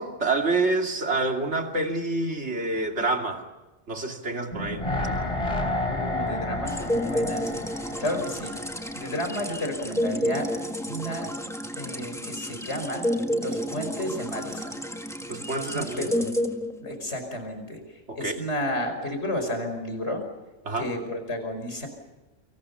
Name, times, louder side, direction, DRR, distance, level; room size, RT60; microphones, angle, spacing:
voice 1, 0.0-3.4 3.9-4.8 15.3-16.1 18.1-18.4 20.6-20.9, right 3 dB, 75° right, 3 dB, 3.0 m, -27 dB
sound 1, 4.5-9.7 10.0-10.1, left 1 dB, 30° left, 3.9 m, -31 dB
voice 2, 5.9-7.5 8.0-8.5 8.9-10.5 10.9-11.3 11.8-13.1 13.4-14.8 15.7-16.1 16.8-20.2 20.8-21.9, left 1 dB, 70° left, 6 dB, 5.6 m, -32 dB
sound 2, 6.7-17.2, equal, 5° left, 1.6 m, -30 dB
29.0 x 26.0 x 5.7 m, 1.1 s
omnidirectional pair, 1.2 m